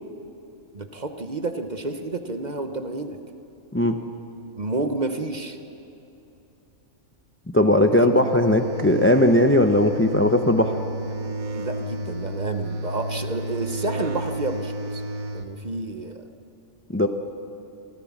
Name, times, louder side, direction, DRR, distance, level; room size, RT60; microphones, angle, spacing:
voice 1, 0.7-3.2 4.6-5.6 7.9-8.1 11.5-15.0 15.3-16.2, right 2 dB, 35° right, 7 dB, 1.0 m, -30 dB
voice 2, 3.7-4.0 7.5-10.8 16.9-17.1, left 1 dB, 15° left, 7 dB, 0.5 m, -18 dB
sound 1, 7.9-15.5, right 1 dB, 80° right, 1.5 m, -31 dB
26.0 x 14.0 x 7.3 m, 2.9 s
omnidirectional pair, 1.4 m